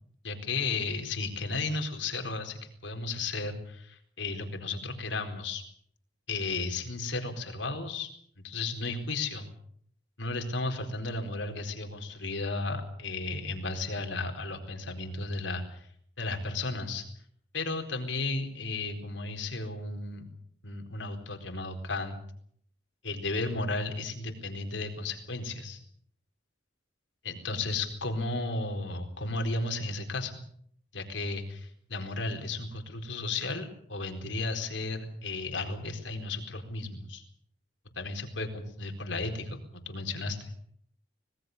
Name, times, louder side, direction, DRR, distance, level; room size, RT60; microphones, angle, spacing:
voice 1, 0.2-5.6 6.3-8.1 8.4-9.5 10.2-15.9 16.2-17.0 17.5-20.3 20.6-22.2 23.0-25.8 27.2-30.4 30.9-37.2 38.0-40.5, left 3 dB, 90° left, 5 dB, 4.3 m, -34 dB
25.0 x 20.0 x 6.7 m, 0.65 s
head